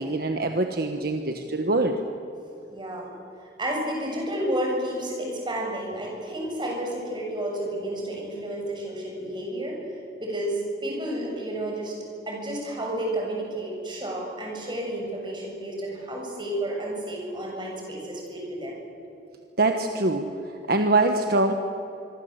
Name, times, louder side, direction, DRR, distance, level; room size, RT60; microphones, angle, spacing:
voice 1, 0.0-2.0 19.6-20.3 20.7-21.5, right 2 dB, 55° right, 5 dB, 1.4 m, -23 dB
voice 2, 2.7-3.1 3.4-9.9 10.2-12.0 12.3-18.7, right 1 dB, 25° right, -1 dB, 7.2 m, -31 dB
26.0 x 23.0 x 8.1 m, 2.9 s
head